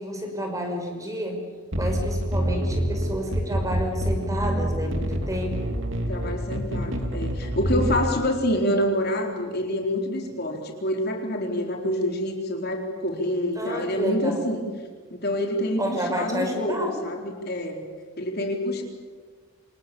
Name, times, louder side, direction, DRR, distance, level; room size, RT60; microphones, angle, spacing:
voice 1, 0.0-1.4 1.7-5.7 13.6-14.4 15.8-16.9, equal, 15° right, 3 dB, 5.7 m, -30 dB
sound 1, 1.7-8.1, equal, 60° right, 3.1 m, -27 dB
voice 2, 6.1-14.7 15.1-17.8 18.2-18.8, left 1 dB, 50° left, 2 dB, 4.3 m, -27 dB
28.0 x 28.0 x 7.1 m, 1.5 s
head